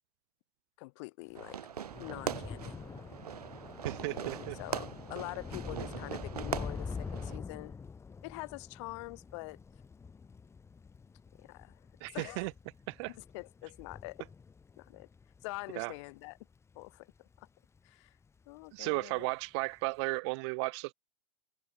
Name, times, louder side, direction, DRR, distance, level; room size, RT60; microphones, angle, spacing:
voice 1, 0.8-1.6 2.0-2.8 4.0-7.7 8.2-9.6 11.4-11.8 12.1-12.5 13.2-14.3 14.8-15.1 15.4-16.4 16.8-17.5 17.8-18.1 18.5-19.3, left 26 dB, 45° left, 3.6 m, -45 dB
Thunder / Rain, 1.3-17.9 18.2-18.7 19.0-19.1, left 5 dB, 15° left, 4.1 m, -46 dB
Fireworks, 1.3-7.4, right 9 dB, 75° right, 2.3 m, -41 dB
voice 2, 3.8-4.6 5.7-6.1 12.0-12.5 12.9-13.1 15.8-15.9 18.7-20.9, right 29 dB, 45° right, 1.8 m, -35 dB
hypercardioid pair, 115°, 20 cm